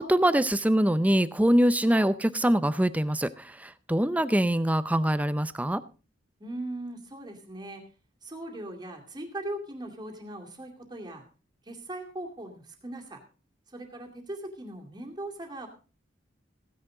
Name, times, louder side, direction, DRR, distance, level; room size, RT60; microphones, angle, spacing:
voice 1, 0.0-5.8, right 1 dB, 10° right, 15 dB, 0.5 m, -24 dB
voice 2, 6.4-7.8 8.2-11.2 11.7-13.2 13.7-15.7, right 1 dB, 25° right, 2 dB, 2.4 m, -39 dB
15.5 x 9.9 x 3.8 m, 0.35 s
head